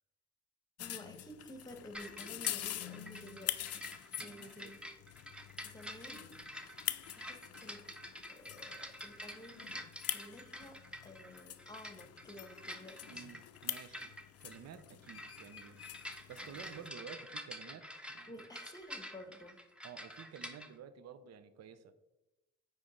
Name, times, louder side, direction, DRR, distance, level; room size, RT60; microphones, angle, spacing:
sound 1, 0.8-16.9, left 12 dB, 55° left, 0.5 m, -45 dB
voice 1, 0.8-3.8 4.2-4.8 5.6-6.3 6.6-7.8 8.3-9.8 10.1-13.3 18.3-19.6, left 1 dB, 15° left, 7 dB, 1.1 m, -52 dB
sound 2, 1.9-20.7, equal, 5° right, 0.8 m, -48 dB
voice 2, 4.2-4.7 13.1-18.4 19.8-21.9, right 7 dB, 60° right, 11 dB, 0.6 m, -52 dB
9.2 x 3.2 x 5.0 m, 0.99 s
cardioid pair, 90°, 30 cm